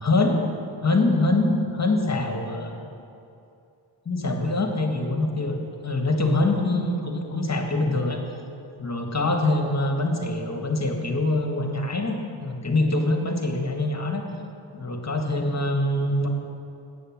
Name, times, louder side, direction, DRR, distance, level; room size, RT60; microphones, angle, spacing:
voice 1, 0.0-0.4 0.8-2.9 4.0-8.2 8.8-14.2 14.7-16.3, left 2 dB, 35° left, 3 dB, 1.5 m, -24 dB
9.0 x 8.4 x 7.3 m, 2.7 s
wide cardioid pair, 65°, 48 cm